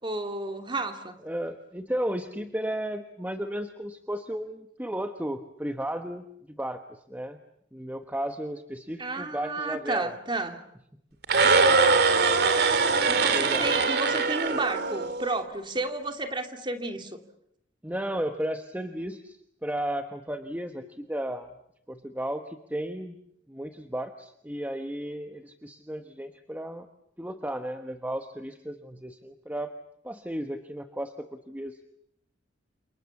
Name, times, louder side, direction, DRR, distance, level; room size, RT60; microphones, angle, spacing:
voice 1, 0.0-1.2 9.0-10.6 13.1-17.2, right 2 dB, 25° right, 5 dB, 2.7 m, -32 dB
voice 2, 1.2-7.4 7.7-10.1 13.3-13.7 17.8-21.5 21.9-23.2 23.5-26.9 27.2-29.7 30.0-31.1 31.5-31.8, right 1 dB, 10° right, 6 dB, 1.2 m, -34 dB
sound 1, 11.2-15.4, right 4 dB, 55° right, 2.3 m, -22 dB
29.5 x 28.0 x 7.3 m, 0.75 s
head